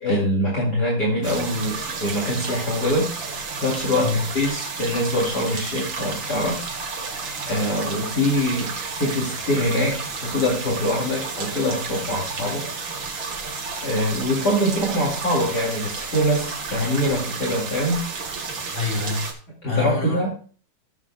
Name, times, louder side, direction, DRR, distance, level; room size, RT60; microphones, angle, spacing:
voice 1, 0.0-3.1 3.6-6.6 7.5-12.6 13.8-18.1 19.6-20.3, left 1 dB, 50° left, -4 dB, 2.7 m, -24 dB
sound 1, 1.2-19.3, right 4 dB, 60° right, 2.2 m, -32 dB
voice 2, 4.0-4.4 18.7-19.3 19.7-20.2, left 4 dB, 30° left, -2 dB, 3.3 m, -26 dB
15.5 x 7.4 x 2.2 m, 0.41 s
omnidirectional pair, 2.3 m